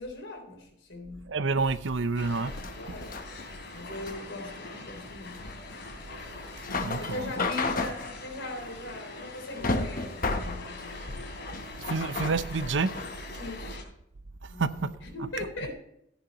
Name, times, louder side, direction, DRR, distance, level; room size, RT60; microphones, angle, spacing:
voice 1, 0.0-1.3 2.8-3.2 3.7-5.4 6.9-11.0 13.4-13.8 14.5-15.7, left 2 dB, 80° left, 3.7 m, -40 dB
voice 2, 1.3-2.5 6.8-7.2 11.9-12.9 14.6-14.7, right 4 dB, 90° right, 0.7 m, -28 dB
sound 1, 1.6-13.2, left 3 dB, 50° left, 1.1 m, -34 dB
sound 2, 2.1-13.8, left 2 dB, 65° left, 3.4 m, -43 dB
15.5 x 9.3 x 3.0 m
head